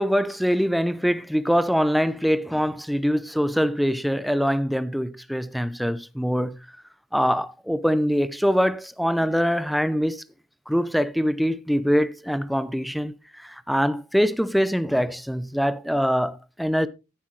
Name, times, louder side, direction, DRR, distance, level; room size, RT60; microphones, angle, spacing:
voice 1, 0.0-6.6 7.1-10.2 10.7-16.9, equal, ahead, 0.5 m, -23 dB
14.0 x 7.7 x 3.2 m
head